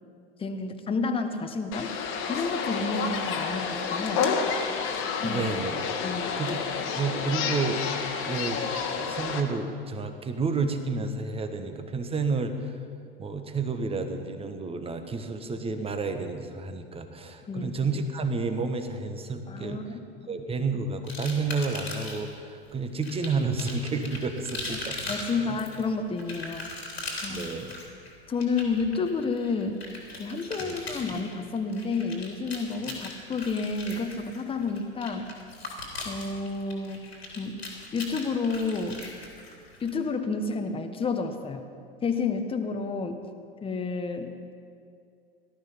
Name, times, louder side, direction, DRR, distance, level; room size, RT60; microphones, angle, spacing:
voice 1, 0.4-1.9 2.3-4.3 5.2-5.4 6.0-6.3 17.5-17.7 19.5-20.3 25.0-26.7 27.2-27.5 28.3-29.8 30.2-35.3 36.0-37.1 37.4-37.6 37.9-39.0 39.8-41.6 42.0-43.2 43.6-44.3, left 4 dB, 20° left, 6 dB, 1.3 m, -30 dB
sound 1, 1.7-9.4, left 6 dB, 45° left, 1.8 m, -30 dB
voice 2, 5.2-5.8 6.4-6.6 7.0-7.8 8.2-8.6 9.0-12.5 13.2-19.8 20.3-25.0 25.3-25.6 27.3-27.7 30.6-30.8, right 4 dB, 20° right, 7 dB, 1.5 m, -30 dB
sound 2, 21.1-22.3 23.0-39.9, left 2 dB, 85° left, 3.6 m, -39 dB
18.0 x 12.5 x 5.8 m, 2.4 s
figure-of-eight pair, 80°, 30 cm